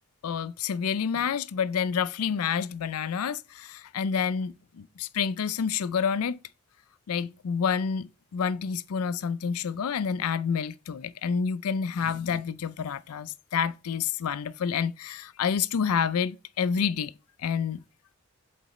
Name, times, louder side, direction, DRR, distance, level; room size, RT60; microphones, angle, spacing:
voice 1, 0.2-6.4 7.1-17.1 17.4-17.8, left 6 dB, 80° left, 0.4 m, -28 dB
7.6 x 4.0 x 3.0 m
head